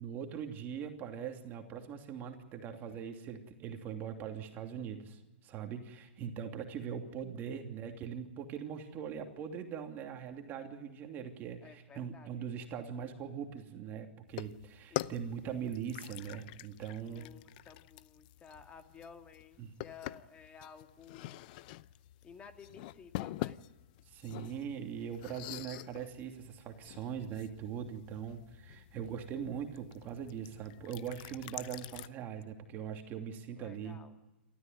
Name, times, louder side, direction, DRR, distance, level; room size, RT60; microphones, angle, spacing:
voice 1, 0.0-17.3 19.6-19.7 24.1-34.0, right 8 dB, 30° right, 5 dB, 2.8 m, -41 dB
voice 2, 11.6-12.5 14.9-15.1 15.4-15.6 17.0-21.5 22.2-23.6 33.5-34.2, left 6 dB, 20° left, 6 dB, 2.4 m, -54 dB
sound 1, 14.3-32.1, left 17 dB, 50° left, 0.7 m, -46 dB
28.5 x 13.5 x 9.4 m, 1.1 s
hypercardioid pair, 120°, 6 cm